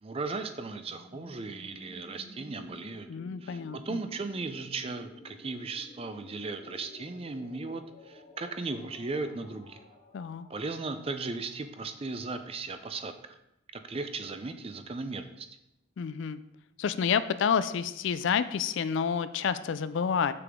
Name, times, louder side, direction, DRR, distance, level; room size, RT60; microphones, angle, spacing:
voice 1, 0.0-3.1 3.4-9.8 10.5-13.3 13.7-15.5, right 3 dB, 25° right, 9 dB, 0.4 m, -37 dB
sound 1, 0.7-12.5, left 1 dB, 25° left, 1.1 m, -53 dB
voice 2, 3.1-4.0 10.1-10.5 16.0-16.4 16.8-20.3, left 7 dB, 60° left, 13 dB, 0.3 m, -29 dB
6.8 x 6.8 x 3.6 m, 0.87 s
head